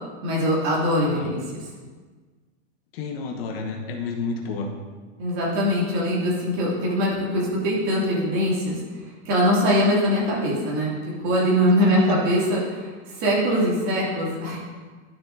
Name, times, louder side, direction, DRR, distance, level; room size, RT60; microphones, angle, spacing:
voice 1, 0.2-1.6 5.2-8.8 9.2-10.9 11.2-14.6, equal, 40° right, -5 dB, 2.7 m, -22 dB
voice 2, 1.0-1.3 2.9-4.7 11.9-12.4, left 4 dB, 55° left, 3 dB, 1.1 m, -31 dB
11.5 x 6.8 x 2.7 m, 1.4 s
supercardioid pair, 160°, 36 cm